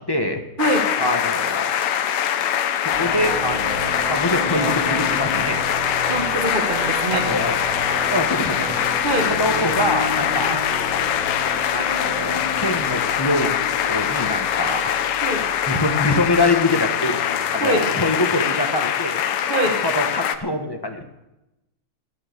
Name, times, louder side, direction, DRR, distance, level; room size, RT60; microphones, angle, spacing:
voice 1, 0.0-0.4 1.0-1.7 2.8-5.6 7.1-7.6 8.1-8.8 9.3-10.6 11.7-14.9 15.7-17.2 17.5-21.0, left 1 dB, 20° left, 5 dB, 0.6 m, -24 dB
sound 1, 0.6-20.4, left 9 dB, 90° left, 1.8 m, -23 dB
sound 2, 2.9-18.0, left 1 dB, 50° right, 7.6 m, -32 dB
voice 2, 6.1-7.3 9.0-9.3 15.2-15.4 17.6-17.8 19.5-19.8, right 2 dB, 30° right, 2 dB, 1.3 m, -23 dB
14.5 x 11.0 x 6.7 m, 0.96 s
omnidirectional pair, 2.3 m